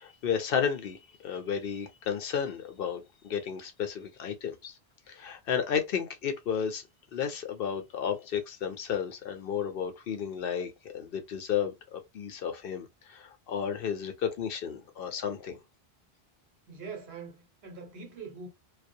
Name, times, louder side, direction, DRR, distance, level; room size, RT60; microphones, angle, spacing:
voice 1, 0.0-4.8 5.1-6.8 7.1-15.6, left 7 dB, 65° left, 0.8 m, -33 dB
voice 2, 16.7-18.5, right 5 dB, 80° right, 1.2 m, -43 dB
2.3 x 2.0 x 2.6 m
omnidirectional pair, 1.0 m